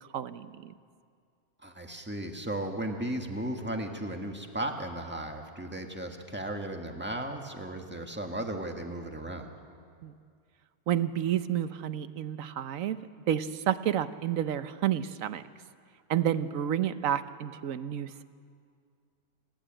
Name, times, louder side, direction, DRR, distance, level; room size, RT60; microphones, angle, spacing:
voice 1, 0.1-0.7 10.0-10.1 10.9-13.0 13.3-15.4 16.1-18.2, right 10 dB, 65° right, 12 dB, 1.1 m, -30 dB
voice 2, 1.6-9.5, right 1 dB, 5° right, 3 dB, 1.7 m, -35 dB
28.5 x 12.0 x 8.9 m, 2.2 s
omnidirectional pair, 1.6 m